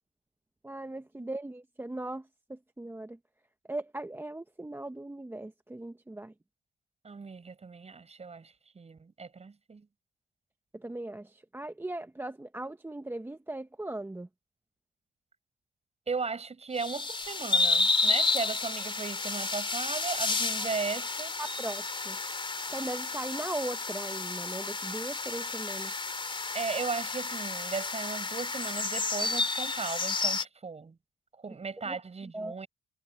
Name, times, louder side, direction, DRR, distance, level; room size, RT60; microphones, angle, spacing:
voice 1, 0.6-3.2 3.7-6.3 10.7-14.3 20.6-20.7 21.4-22.2 22.7-25.9 31.9-32.0 32.3-32.6, right 1 dB, 10° right, 1.1 m, -38 dB
voice 2, 7.0-9.9 16.1-21.4 26.5-31.0 31.4-32.7, right 4 dB, 30° right, 6.0 m, -36 dB
sound 1, 16.7-30.4, left 3 dB, 25° left, 3.2 m, -31 dB
cardioid pair, 90°, 20 cm